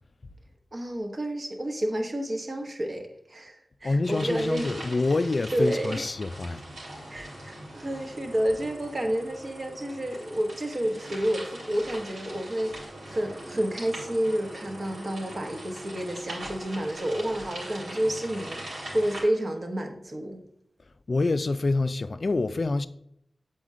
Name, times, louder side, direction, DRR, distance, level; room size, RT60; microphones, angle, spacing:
voice 1, 0.7-4.8 5.5-6.1 7.1-20.4, right 1 dB, 45° right, 1.0 m, -30 dB
voice 2, 3.8-6.6 21.1-22.9, left 3 dB, 45° left, 0.3 m, -26 dB
sound 1, 4.0-19.2, right 1 dB, 90° right, 2.8 m, -41 dB
7.9 x 4.2 x 3.6 m
wide cardioid pair, 105°, 0 cm